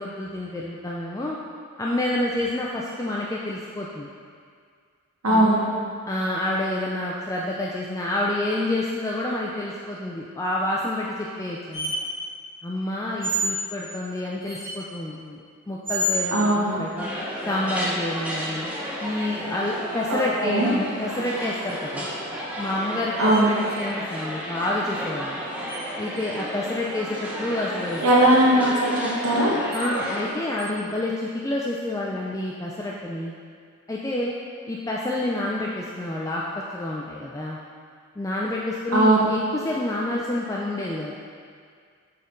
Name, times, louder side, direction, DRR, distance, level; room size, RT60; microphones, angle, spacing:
voice 1, 0.0-1.4 1.8-4.1 5.3-5.6 6.1-12.0 12.6-17.1 17.5-18.7 19.0-22.1 22.6-25.4 26.0-28.0 29.7-33.3 33.9-34.3 34.7-36.4 36.7-37.6 38.2-39.4 39.6-41.2, left 1 dB, 15° left, -4 dB, 0.3 m, -28 dB
voice 2, 5.2-5.6 16.3-16.8 20.1-20.7 23.2-23.5 28.0-29.5 38.9-39.2, right 1 dB, 85° right, -5 dB, 1.1 m, -19 dB
sound 1, 11.7-12.0 13.2-13.6 14.4-14.7 15.8-16.2 19.2-19.7 21.3-22.0 23.1-23.4 23.7-23.8 25.7-25.8 26.2-26.3 27.9-28.1 29.7-29.8 30.6-30.7, equal, 25° right, 1.5 m, -30 dB
sound 2, 17.0-30.3, equal, 5° right, 0.7 m, -33 dB
6.8 x 4.3 x 3.8 m, 2.1 s
head